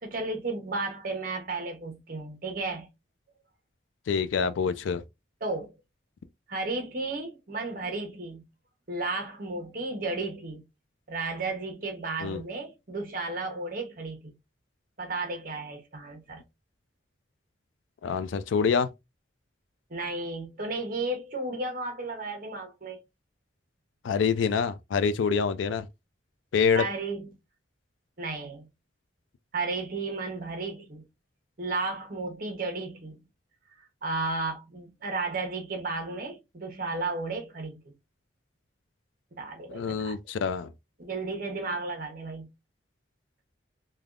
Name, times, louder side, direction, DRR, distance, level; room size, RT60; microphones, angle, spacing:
voice 1, 0.0-2.9 5.4-5.7 6.5-8.4 8.9-10.6 11.1-14.3 15.0-16.4 19.9-23.0 26.7-27.3 28.2-28.7 29.5-31.0 31.6-33.2 34.0-37.8 39.4-40.2 41.0-42.5, right 3 dB, 45° right, 0.9 m, -33 dB
voice 2, 4.1-5.0 12.2-12.4 18.0-18.9 24.0-25.9 26.5-26.8 39.7-40.7, left 6 dB, 80° left, 0.3 m, -26 dB
3.3 x 2.3 x 2.4 m
head